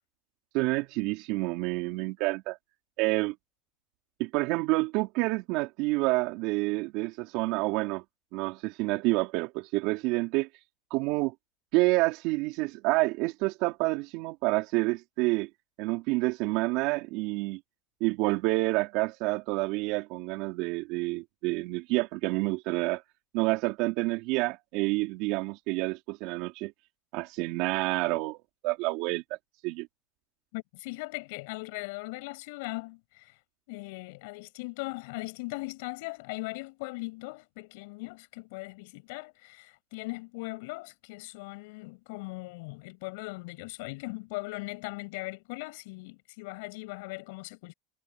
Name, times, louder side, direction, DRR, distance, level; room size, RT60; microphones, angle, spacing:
voice 1, 0.5-2.6 3.0-3.3 4.2-8.0 8.3-10.5 10.9-11.3 11.7-15.5 15.8-17.6 18.0-23.0 23.3-26.7 27.1-29.2 29.6-29.9, right 23 dB, 70° right, 4.3 m, -28 dB
voice 2, 30.5-33.4 33.7-47.7, left 26 dB, 75° left, 7.3 m, -39 dB
supercardioid pair, 105°, 0 cm